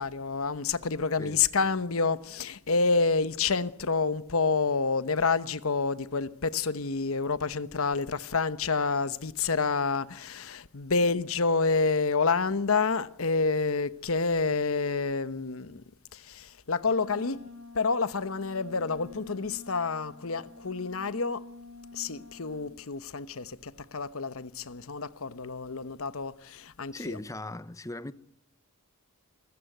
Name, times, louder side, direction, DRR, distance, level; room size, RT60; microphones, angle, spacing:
voice 1, 0.0-15.8 16.1-17.4 17.7-21.4 21.9-27.2, left 4 dB, 65° left, 1.0 m, -28 dB
Wind instrument woodwind instrument, 16.8-22.8, left 3 dB, 80° right, 4.8 m, -48 dB
voice 2, 26.9-28.1, left 2 dB, 15° left, 0.8 m, -38 dB
25.5 x 15.0 x 9.2 m
head